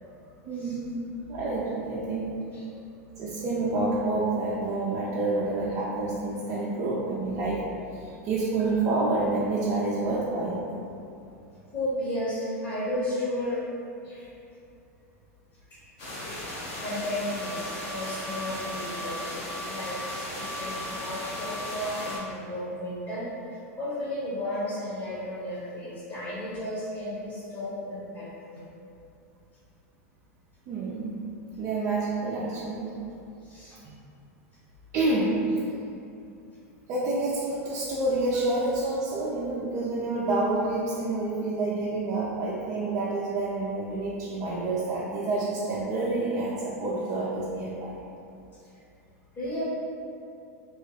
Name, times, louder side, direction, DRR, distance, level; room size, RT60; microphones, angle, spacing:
voice 1, 0.4-2.3 3.2-7.6 7.9-10.6 30.7-31.2 31.6-32.9 34.9-35.4 36.9-48.1, right 2 dB, 40° right, -6 dB, 0.5 m, -28 dB
voice 2, 11.7-13.6 14.0-14.3 16.8-28.3 28.5-28.7 33.4-33.8 49.3-49.6, left 1 dB, 30° left, -10 dB, 1.1 m, -33 dB
sound 1, 16.0-22.2, left 1 dB, 55° left, 1.0 m, -36 dB
2.9 x 2.2 x 3.3 m, 2.7 s
hypercardioid pair, 110°, 8 cm